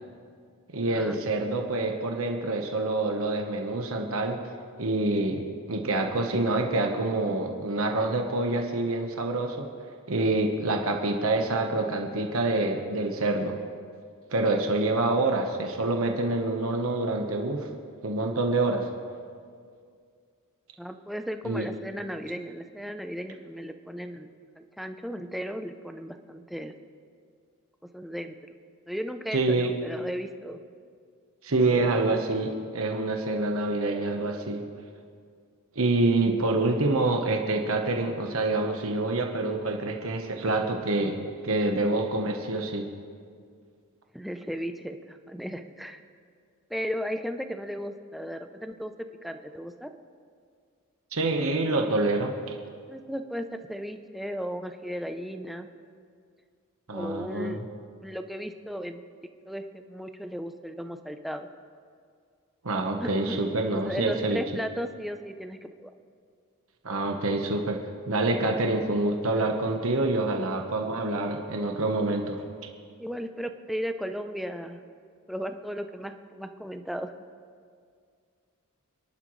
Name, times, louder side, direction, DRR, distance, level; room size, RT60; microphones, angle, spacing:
voice 1, 0.7-4.4 4.8-5.4 5.7-9.6 10.1-13.5 14.3-17.7 18.0-18.9 21.4-21.7 29.3-29.7 31.4-34.6 35.7-42.9 51.1-52.3 56.9-57.6 62.6-64.4 66.8-67.8 68.1-72.4, right 2 dB, 70° right, 3 dB, 1.2 m, -26 dB
voice 2, 20.8-24.3 24.6-26.7 27.9-28.4 28.9-30.6 31.7-32.0 44.1-46.0 46.7-49.9 52.9-55.7 56.9-57.6 58.0-59.0 59.5-61.5 63.0-65.9 73.0-74.8 75.3-77.1, equal, ahead, 7 dB, 0.6 m, -35 dB
27.0 x 11.5 x 3.2 m, 2.2 s
head